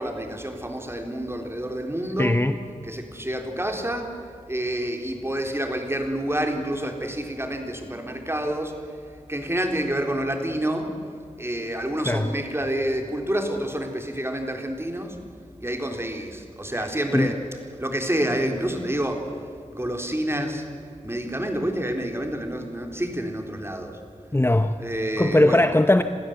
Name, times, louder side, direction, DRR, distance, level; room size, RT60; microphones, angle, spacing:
voice 1, 0.0-2.4 2.8-4.1 4.5-8.7 9.3-10.9 11.4-15.2 15.6-17.4 17.8-19.3 19.7-20.7 21.0-24.0 24.8-25.7, right 1 dB, 20° right, 4 dB, 3.6 m, -28 dB
voice 2, 2.0-2.6 12.0-12.3 17.1-17.3 24.3-24.8 25.2-26.0, left 1 dB, 20° left, 9 dB, 0.9 m, -19 dB
27.0 x 16.0 x 8.0 m, 2.4 s
wide cardioid pair, 50°, 13 cm